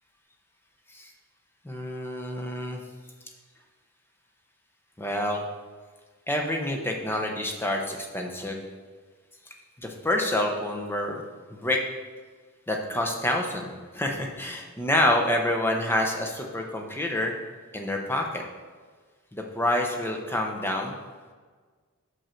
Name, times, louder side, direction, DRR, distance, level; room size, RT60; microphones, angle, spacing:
voice 1, 1.6-2.8 5.0-5.4 6.3-8.6 9.8-11.2 11.5-11.8 12.7-17.3 17.7-18.4 19.3-20.9, left 1 dB, 10° left, 2 dB, 0.7 m, -27 dB
6.2 x 5.3 x 4.4 m, 1.5 s
head